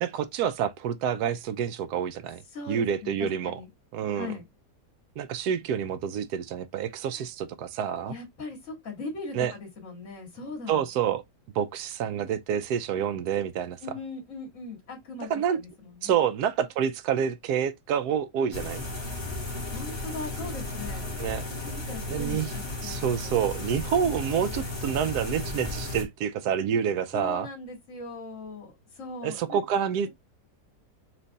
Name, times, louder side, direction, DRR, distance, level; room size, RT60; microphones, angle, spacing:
voice 1, 0.0-3.6 3.9-4.4 5.2-8.2 9.4-9.5 10.7-11.2 11.5-13.8 15.3-15.6 16.0-18.8 21.2-21.4 22.1-22.5 22.8-27.5 29.2-30.1, right 8 dB, 75° right, 1.0 m, -28 dB
voice 2, 2.5-3.7 4.1-4.4 7.1-7.2 8.1-10.9 13.8-16.2 19.7-21.1 21.6-23.3 27.1-29.6, left 3 dB, 50° left, 2.3 m, -39 dB
sound 1, 18.5-26.0, left 2 dB, 20° left, 1.0 m, -34 dB
4.5 x 2.5 x 3.9 m
omnidirectional pair, 1.8 m